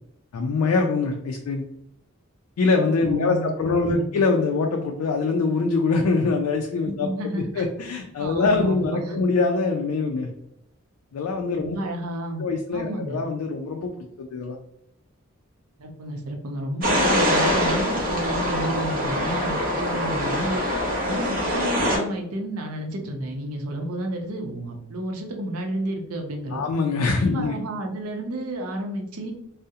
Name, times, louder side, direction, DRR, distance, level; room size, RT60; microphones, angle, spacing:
voice 1, 0.3-1.6 2.6-7.1 7.5-10.3 11.1-11.8 12.4-14.6 26.5-27.5, left 3 dB, 90° left, 3 dB, 0.3 m, -23 dB
voice 2, 3.0-3.5 3.8-4.1 6.8-7.7 8.2-9.2 11.6-13.2 15.8-20.6 21.0-26.6 27.2-29.3, right 1 dB, 90° right, 2 dB, 0.5 m, -31 dB
sound 1, 16.8-22.0, equal, 40° right, 0.6 m, -24 dB
2.7 x 2.0 x 2.3 m, 0.77 s
head